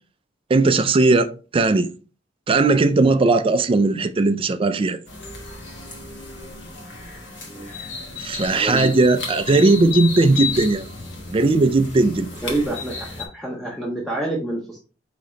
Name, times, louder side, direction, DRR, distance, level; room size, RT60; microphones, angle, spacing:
voice 1, 0.5-1.9 2.5-5.0 8.2-10.9 11.3-12.3, right 3 dB, 30° right, 0.4 m, -18 dB
sound 1, 5.1-13.3, left 5 dB, 75° left, 1.0 m, -33 dB
voice 2, 8.5-8.9 12.4-14.8, right 1 dB, ahead, 0.7 m, -27 dB
4.9 x 2.9 x 3.1 m
head